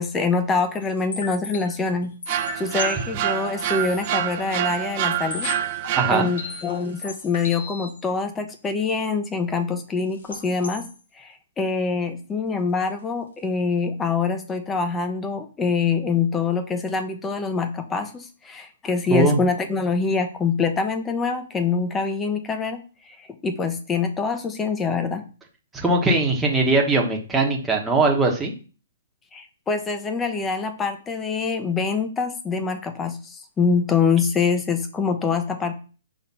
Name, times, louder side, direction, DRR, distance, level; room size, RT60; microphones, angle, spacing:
voice 1, 0.0-5.5 6.1-10.9 11.2-25.2 29.3-35.7, left 5 dB, 10° left, 8 dB, 0.7 m, -25 dB
sound 1, 0.8-4.1 4.4-4.5 5.0-5.1 5.3-8.0 10.2-11.0, left 5 dB, 85° left, 1.7 m, -36 dB
sound 2, 2.3-6.6, right 11 dB, 35° right, 0.8 m, -27 dB
voice 2, 6.0-6.3 19.1-19.4 25.7-28.5, right 3 dB, 5° right, -1 dB, 1.1 m, -20 dB
6.1 x 3.2 x 5.5 m, 0.36 s
hypercardioid pair, 160°, 0 cm